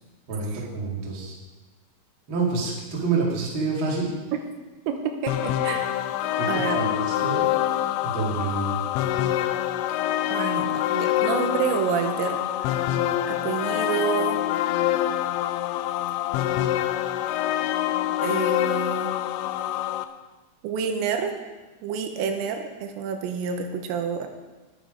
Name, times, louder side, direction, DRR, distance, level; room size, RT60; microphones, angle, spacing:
voice 1, 0.3-1.4 2.3-4.2 6.4-7.5 8.0-8.7, right 4 dB, 35° right, -3 dB, 2.3 m, -27 dB
voice 2, 4.9-6.0 6.4-6.8 10.3-12.9 13.3-14.4 18.2-19.2 20.6-21.3 21.8-24.3, right 6 dB, 85° right, 5 dB, 3.2 m, -28 dB
sound 1, 5.3-20.0, left 13 dB, 85° left, 2.8 m, -25 dB
10.5 x 10.0 x 5.1 m, 1.2 s
omnidirectional pair, 5.2 m